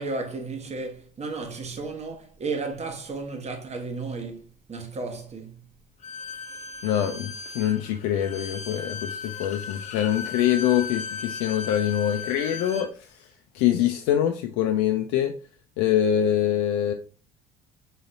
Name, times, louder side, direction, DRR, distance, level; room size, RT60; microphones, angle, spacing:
voice 1, 0.0-4.4 4.7-5.6, right 3 dB, 35° right, 1.1 m, -33 dB
Bowed string instrument, 6.0-12.9, left 5 dB, 40° left, 0.8 m, -36 dB
voice 2, 6.8-15.3 15.8-16.9, left 10 dB, 70° left, 0.5 m, -24 dB
4.0 x 4.0 x 2.5 m
hypercardioid pair, 60°, 20 cm